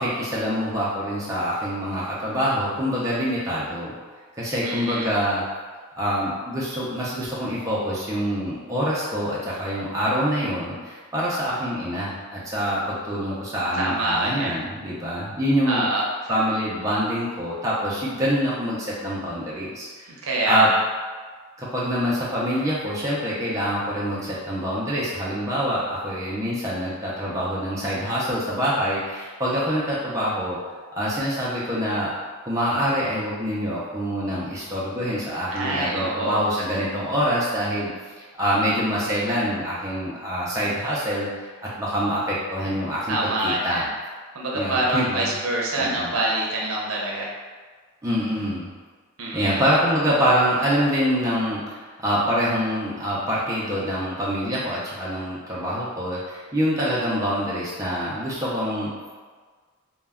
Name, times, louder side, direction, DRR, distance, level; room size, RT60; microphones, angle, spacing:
voice 1, 0.0-3.9 4.4-5.4 6.0-15.9 16.3-20.1 20.4-20.7 21.6-30.6 31.0-32.1 32.5-37.9 38.3-43.8 44.5-45.3 45.8-46.2 48.0-48.7 49.3-58.9, equal, 15° right, -8 dB, 0.4 m, -25 dB
voice 2, 4.6-5.1 13.7-14.6 15.7-16.0 20.2-20.8 35.5-36.4 43.1-43.9 44.3-47.3 49.2-49.6, right 1 dB, 70° right, -2 dB, 0.6 m, -25 dB
2.2 x 2.1 x 3.4 m, 1.5 s
head